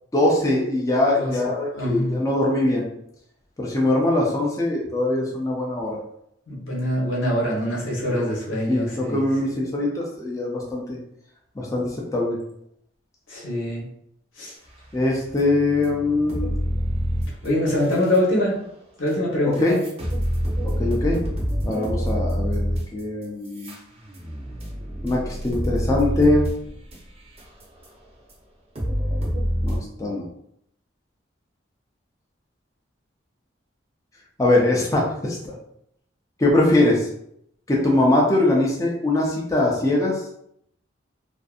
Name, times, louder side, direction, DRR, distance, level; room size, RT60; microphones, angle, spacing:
voice 1, 0.1-2.8 3.6-6.0 8.1-8.3 8.7-11.0 11.6-12.4 14.9-16.5 19.6-19.8 20.8-21.2 21.6-22.7 22.9-23.8 25.0-26.5 29.6-30.3 34.4-35.5 36.4-37.1 37.7-40.2, left 2 dB, 15° left, -3 dB, 0.4 m, -22 dB
voice 2, 1.7-2.1 6.5-9.2 13.3-13.9 14.4-14.5 17.4-18.6 19.0-19.8, left 1 dB, 90° left, -4 dB, 1.0 m, -24 dB
sound 1, 14.9-18.2 19.1-19.2 19.5-27.9 28.3-28.4 28.8-29.8, equal, 30° right, 0.5 m, -27 dB
2.5 x 2.5 x 2.3 m, 0.73 s
head